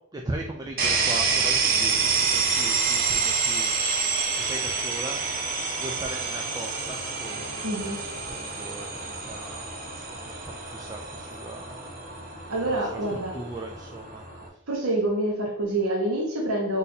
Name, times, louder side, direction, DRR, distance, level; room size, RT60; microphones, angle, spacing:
voice 1, 0.0-3.8 4.4-5.4 5.8-12.0 12.7-14.2 14.5-14.6, right 1 dB, 15° right, 2 dB, 0.3 m, -39 dB
sound 1, 0.8-14.5, right 5 dB, 40° right, 0.8 m, -28 dB
voice 2, 7.6-8.0 12.5-13.4 14.7-16.8, right 1 dB, 70° right, -2 dB, 1.1 m, -26 dB
4.0 x 2.6 x 4.1 m, 0.84 s
head